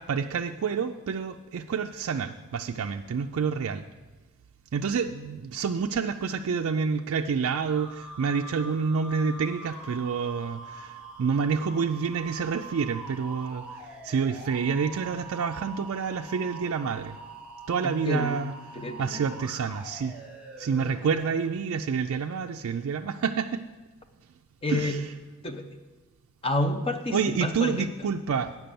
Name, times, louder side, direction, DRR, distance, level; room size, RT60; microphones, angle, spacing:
voice 1, 0.0-3.8 4.7-17.2 17.7-18.5 19.0-20.1 20.6-23.6 24.7-25.0 27.1-28.7, right 5 dB, 70° right, 4 dB, 0.4 m, -28 dB
sound 1, 7.6-21.4, right 3 dB, 5° right, 1.0 m, -44 dB
voice 2, 17.8-19.4 24.6-25.0 25.4-25.8 26.4-27.9, left 2 dB, 25° left, 6 dB, 0.6 m, -30 dB
8.9 x 6.0 x 6.9 m, 1.2 s
head